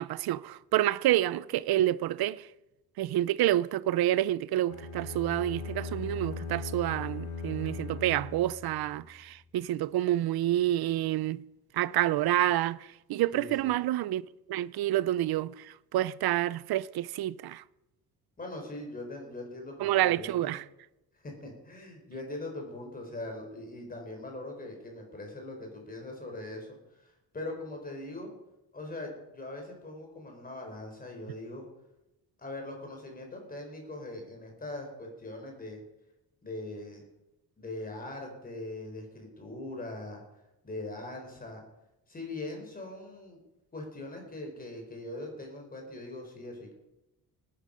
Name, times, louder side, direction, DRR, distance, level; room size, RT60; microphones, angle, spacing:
voice 1, 0.0-2.5 3.0-11.4 11.7-14.2 14.5-17.6 19.8-20.6, right 13 dB, 70° right, 0.6 m, -28 dB
sound 1, 4.7-9.1, left 4 dB, 65° left, 2.5 m, -39 dB
voice 2, 13.3-13.7 18.4-20.5 21.2-26.7 27.0-28.3 28.7-31.6 32.4-35.8 36.4-37.1 37.6-40.2 40.6-41.6 42.1-43.4 43.7-46.7, left 2 dB, 20° left, 3.9 m, -41 dB
19.0 x 11.0 x 5.0 m
wide cardioid pair, 170°, 39 cm